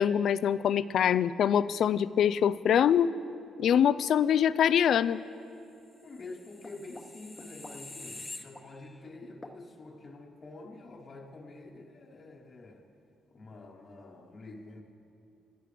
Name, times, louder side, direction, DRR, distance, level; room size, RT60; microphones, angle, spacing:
voice 1, 0.0-3.1 3.6-5.2, left 9 dB, 65° left, 17 dB, 0.4 m, -24 dB
voice 2, 6.0-12.9 13.3-14.8, left 2 dB, 45° left, 0 dB, 1.2 m, -47 dB
sound 1, 6.1-9.0 9.4-9.6, left 2 dB, 20° left, 1.0 m, -46 dB
27.0 x 11.0 x 3.4 m, 2.7 s
cardioid pair, 90°, 0 cm